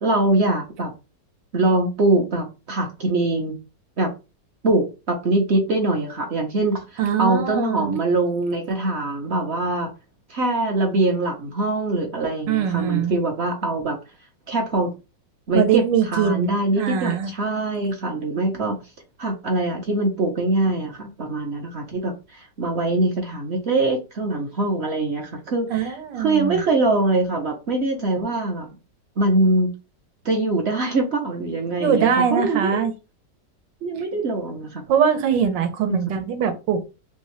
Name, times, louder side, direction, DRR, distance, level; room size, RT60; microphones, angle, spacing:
voice 1, 0.0-0.9 1.5-3.5 4.0-4.1 4.6-9.9 10.3-14.0 14.5-14.9 15.5-18.8 19.2-28.7 29.2-29.7 30.2-32.9 33.8-34.8 35.9-36.0, right 2 dB, 55° right, 2 dB, 0.7 m, -23 dB
voice 2, 7.0-8.0 12.5-13.2 15.5-17.3 25.7-26.6 31.8-32.9 34.9-36.9, right 8 dB, 80° right, 7 dB, 1.5 m, -22 dB
3.5 x 2.7 x 3.1 m, 0.29 s
omnidirectional pair, 1.9 m